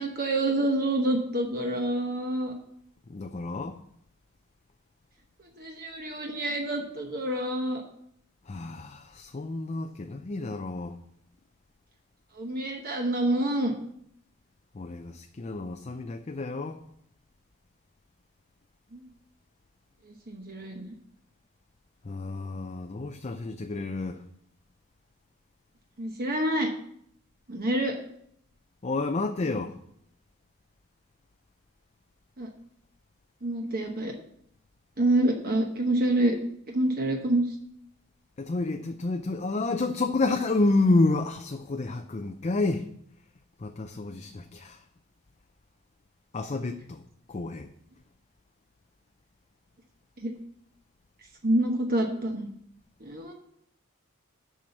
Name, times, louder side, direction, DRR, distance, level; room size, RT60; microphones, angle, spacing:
voice 1, 0.0-2.6 5.6-7.8 12.4-13.7 18.9-19.0 20.3-20.9 26.0-26.7 27.5-28.0 32.4-32.5 33.4-34.1 35.0-36.4 36.7-37.4 50.2-50.4 51.4-52.5 53.0-53.3, right 1 dB, 45° right, 1.0 m, -27 dB
voice 2, 3.1-3.8 8.4-11.0 14.7-16.8 22.0-24.2 28.8-29.8 38.4-42.9 43.6-44.8 46.3-47.0 47.3-47.7, left 2 dB, 30° left, 0.5 m, -29 dB
7.5 x 5.7 x 7.7 m
head